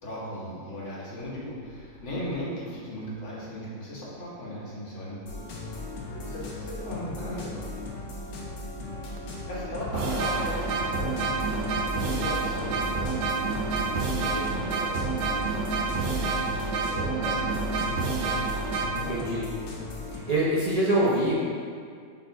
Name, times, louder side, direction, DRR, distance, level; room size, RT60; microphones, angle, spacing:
voice 1, 0.0-5.4 6.1-7.6 9.5-13.6 14.0-17.9 18.9-19.4, left 1 dB, 40° left, -6 dB, 1.4 m, -37 dB
sound 1, 5.3-20.2, left 2 dB, 90° left, 1.7 m, -37 dB
sound 2, 9.2-9.3 9.8-18.9, right 4 dB, 85° right, 1.4 m, -28 dB
voice 2, 19.1-19.4 20.1-21.3, right 1 dB, 35° right, -8 dB, 0.6 m, -25 dB
5.4 x 4.2 x 4.6 m, 2.2 s
omnidirectional pair, 2.1 m